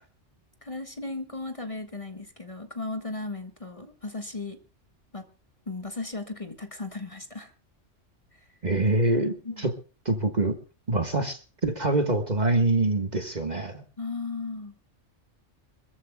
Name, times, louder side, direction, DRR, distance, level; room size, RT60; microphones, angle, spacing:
voice 1, 0.6-4.6 5.1-5.3 5.7-7.5 8.3-8.4 9.4-9.7 14.0-14.8, left 3 dB, 25° left, 6 dB, 1.7 m, -36 dB
voice 2, 8.6-9.7 10.0-10.6 10.9-13.8, right 2 dB, 35° right, 7 dB, 1.6 m, -25 dB
25.5 x 14.5 x 2.3 m, 0.36 s
omnidirectional pair, 1.3 m